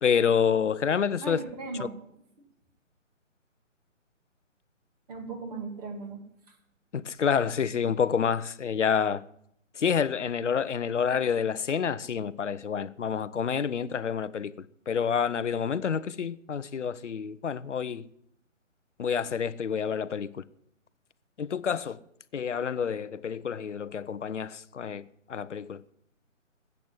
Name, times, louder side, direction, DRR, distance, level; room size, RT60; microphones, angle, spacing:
voice 1, 0.0-1.4 6.9-9.2 9.8-14.5 14.9-18.1 19.0-20.4 21.4-22.0 22.3-25.0 25.3-25.8, left 7 dB, 65° left, 0.8 m, -28 dB
voice 2, 1.2-2.0 2.4-2.5 5.1-6.6, right 3 dB, 30° right, 2.7 m, -38 dB
14.5 x 8.2 x 9.7 m
figure-of-eight pair, 145°, 39 cm